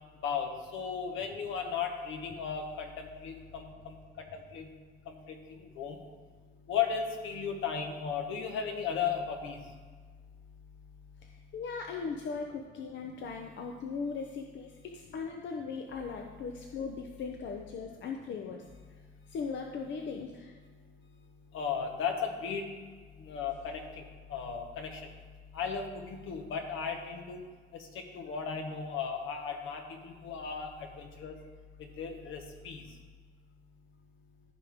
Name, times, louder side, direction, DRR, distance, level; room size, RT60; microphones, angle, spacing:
voice 1, 0.2-3.9 4.5-4.7 5.8-6.0 6.7-9.6 21.5-22.7 23.2-25.0 25.5-27.4 28.1-31.3 32.0-32.8, left 6 dB, 85° left, 3 dB, 1.3 m, -35 dB
voice 2, 11.2-18.6 19.3-20.5, left 5 dB, 65° left, 3 dB, 0.7 m, -39 dB
14.0 x 5.0 x 3.6 m, 1.5 s
cardioid pair, 90°, 20 cm